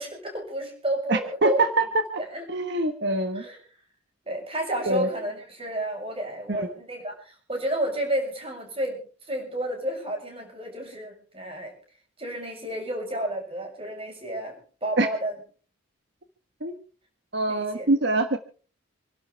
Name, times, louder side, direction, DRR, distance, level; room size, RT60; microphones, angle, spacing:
voice 1, 0.0-1.8 2.3-2.4 3.3-3.6 4.3-9.0 9.3-11.7 12.2-14.5 14.8-15.4 17.5-17.9, right 1 dB, 25° right, 1 dB, 7.0 m, -31 dB
voice 2, 1.1-1.8 2.5-3.4 4.9-5.1 6.5-6.7 15.0-15.1 16.6-16.8 17.3-18.4, right 2 dB, 55° right, 7 dB, 1.4 m, -24 dB
28.0 x 12.0 x 3.4 m, 0.40 s
head